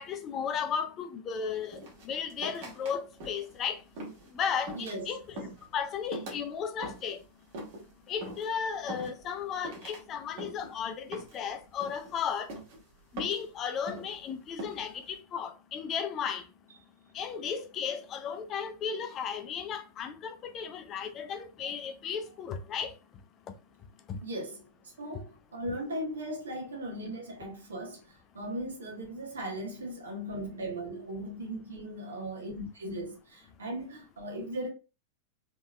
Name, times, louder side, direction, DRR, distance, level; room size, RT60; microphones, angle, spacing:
voice 1, 0.0-3.8 4.3-5.4 5.7-7.2 8.1-12.5 13.1-16.4 17.1-22.9 24.1-24.2, left 7 dB, 30° left, 0.6 m, -35 dB
sound 1, 1.7-2.9 3.2-3.6 3.9-4.3 4.7-5.0 5.4-5.7 6.1-6.4 6.8-7.2 7.5-7.8 8.2-8.5 8.9-9.4 9.6-10.0 10.4-10.7 11.1-11.5 11.8-12.1 12.5-12.8 13.2-13.5 13.9-14.2 14.6-14.9, right 1 dB, 50° right, 1.6 m, -42 dB
voice 2, 4.7-5.2 24.2-24.7 25.0-34.7, right 1 dB, 70° right, 1.3 m, -38 dB
3.9 x 3.5 x 2.2 m
figure-of-eight pair, 90°, 0 cm